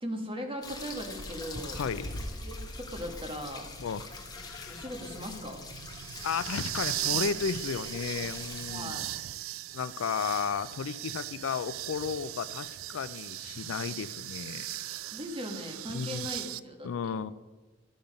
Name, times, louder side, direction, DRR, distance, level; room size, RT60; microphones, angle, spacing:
voice 1, 0.0-1.8 2.2-3.7 4.7-5.6 8.7-9.1 15.1-17.1, equal, 25° right, 3 dB, 1.4 m, -39 dB
sound 1, 0.6-8.9, left 3 dB, 20° left, 1.3 m, -44 dB
Bird, 1.1-4.3 4.8-4.9 5.2-5.5 6.3-6.4, equal, 40° left, 2.7 m, -42 dB
voice 2, 1.8-2.1 3.8-4.9 6.2-9.0 9.7-14.8 15.9-16.3 16.8-17.3, left 6 dB, 75° left, 16 dB, 0.4 m, -34 dB
sound 2, 3.5-16.6, right 14 dB, 85° right, 0.3 m, -38 dB
12.0 x 7.1 x 5.2 m, 1.2 s
head